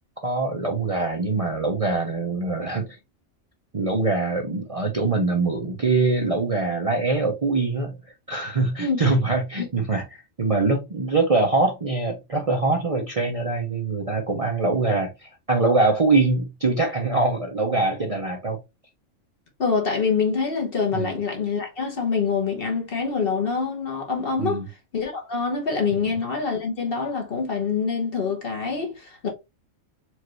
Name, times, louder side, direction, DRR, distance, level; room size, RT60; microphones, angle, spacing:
voice 1, 0.2-3.0 3.7-8.0 8.3-18.6 20.9-21.1 24.4-24.7, right 3 dB, 35° right, 0.6 m, -23 dB
voice 2, 19.6-24.6 24.9-29.3, left 5 dB, 50° left, 1.2 m, -25 dB
4.5 x 2.5 x 3.0 m
omnidirectional pair, 1.3 m